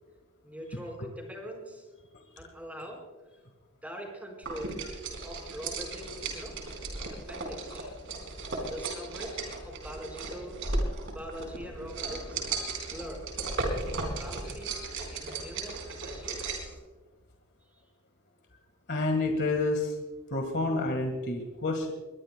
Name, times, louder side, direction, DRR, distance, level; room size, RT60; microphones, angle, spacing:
voice 1, 0.4-1.9 2.4-3.0 3.8-4.8 5.2-6.5 7.1-7.9 8.7-10.6 11.1-12.5 12.9-13.2 14.2-16.8 17.7-17.8, equal, 5° right, 1 dB, 4.5 m, -43 dB
sound 1, 4.4-16.7, right 3 dB, 60° right, 4.3 m, -36 dB
voice 2, 18.9-20.0 20.3-21.9, left 2 dB, 50° left, 4 dB, 1.7 m, -29 dB
22.0 x 21.5 x 2.2 m, 1.3 s
head